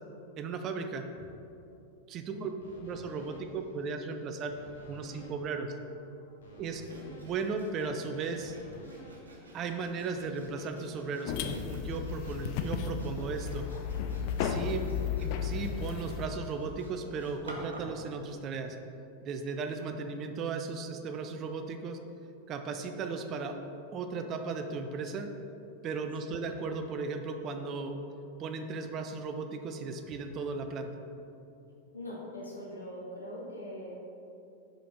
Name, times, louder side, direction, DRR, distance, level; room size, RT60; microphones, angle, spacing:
voice 1, 0.4-1.0 2.1-2.5 2.8-4.5 4.9-5.7 6.6-6.8 7.1-8.6 9.5-13.7 14.4-14.8 15.2-18.8 19.2-22.0 22.5-23.6 23.9-25.3 25.8-28.0 28.4-30.9, right 4 dB, 35° right, 6 dB, 0.5 m, -36 dB
sound 1, 2.6-10.2, equal, 65° left, 1.5 m, -54 dB
Sawing, 6.6-18.0, right 1 dB, 70° right, 0.9 m, -51 dB
sound 2, 11.3-16.3, left 7 dB, 45° left, 0.4 m, -34 dB
voice 2, 31.9-34.0, left 1 dB, 80° left, -4 dB, 1.3 m, -42 dB
5.0 x 4.4 x 5.1 m, 2.8 s
figure-of-eight pair, 90°, 0 cm